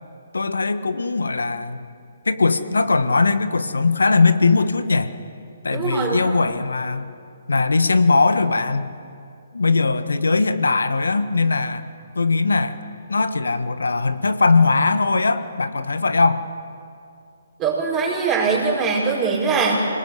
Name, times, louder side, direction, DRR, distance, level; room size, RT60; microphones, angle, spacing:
voice 1, 0.3-1.8 2.2-5.1 5.6-7.1 7.5-8.9 9.5-11.8 12.1-12.8 13.1-16.5, left 3 dB, 80° left, 12 dB, 1.3 m, -20 dB
voice 2, 5.7-6.4 17.6-19.8, right 5 dB, 20° right, -4 dB, 5.4 m, -22 dB
26.0 x 20.0 x 8.1 m, 2.4 s
figure-of-eight pair, 140°, 0 cm